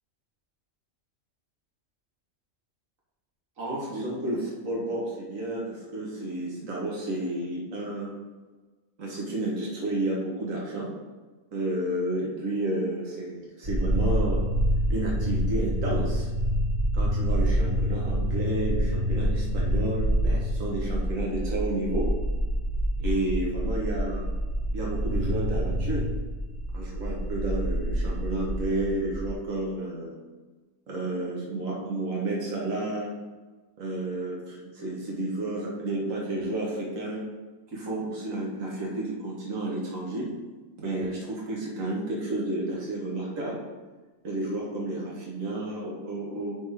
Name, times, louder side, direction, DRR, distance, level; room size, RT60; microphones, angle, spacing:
voice 1, 3.6-8.1 9.0-10.9 11.5-14.4 14.9-16.3 16.9-22.1 23.0-24.3 24.7-26.1 26.7-30.2 30.9-33.1 33.8-37.2 37.7-40.3 40.8-43.6 44.2-46.6, right 2 dB, 75° right, -4 dB, 1.9 m, -31 dB
sound 1, 13.6-29.3, equal, 45° right, 1.4 m, -27 dB
10.0 x 4.1 x 3.6 m, 1.3 s
omnidirectional pair, 1.4 m